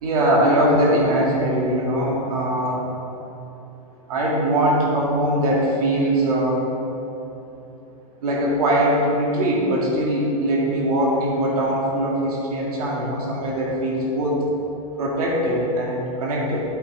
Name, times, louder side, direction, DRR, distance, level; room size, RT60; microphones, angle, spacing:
voice 1, 0.0-2.8 4.1-6.7 8.2-14.4 15.0-16.6, right 1 dB, 80° right, -3 dB, 2.0 m, -21 dB
12.5 x 6.3 x 3.3 m, 2.9 s
supercardioid pair, 150°, 19 cm